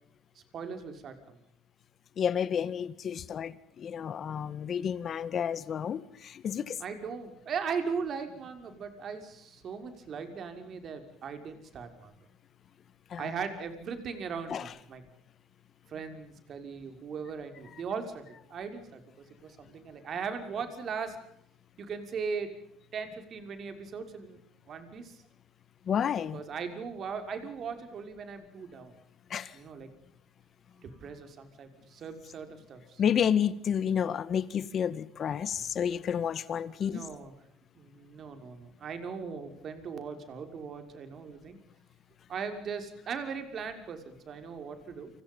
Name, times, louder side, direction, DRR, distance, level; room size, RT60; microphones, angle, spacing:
voice 1, 0.5-1.4 6.8-12.1 13.2-15.0 15.9-19.0 19.4-21.2 21.8-22.5 22.9-24.4 24.7-25.2 26.3-28.9 29.5-29.9 30.8-33.0 36.8-37.3 37.8-41.6 42.3-45.1, right 6 dB, 45° right, 7 dB, 6.0 m, -38 dB
voice 2, 2.2-6.8 13.1-13.3 14.5-14.7 25.9-26.4 29.3-29.6 33.0-37.0, left 8 dB, 45° left, 15 dB, 1.9 m, -30 dB
30.0 x 27.5 x 5.6 m, 0.71 s
cardioid pair, 120°, 0 cm